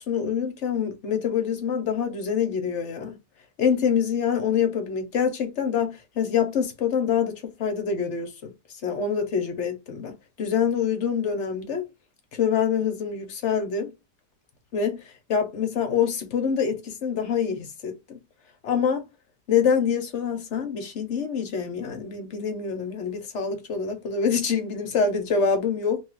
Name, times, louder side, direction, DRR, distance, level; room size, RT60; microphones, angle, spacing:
voice 1, 0.0-3.2 3.6-8.5 8.8-11.8 12.3-13.9 14.7-15.0 15.3-18.2 18.6-19.1 19.5-26.0, left 7 dB, 60° left, 0.8 m, -25 dB
2.9 x 2.3 x 3.1 m
omnidirectional pair, 1.7 m